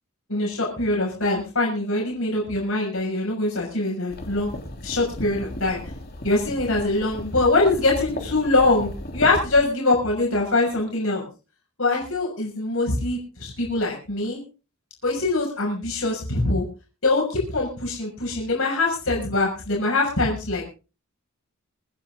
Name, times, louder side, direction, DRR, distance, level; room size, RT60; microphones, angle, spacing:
voice 1, 0.3-4.5 4.8-5.8 6.2-11.2 11.8-14.4 15.0-16.6 17.0-20.6, left 2 dB, 65° left, -2 dB, 6.2 m, -23 dB
sound 1, 4.1-9.6, left 1 dB, 45° left, 3.3 m, -35 dB
25.0 x 9.9 x 3.7 m, 0.34 s
head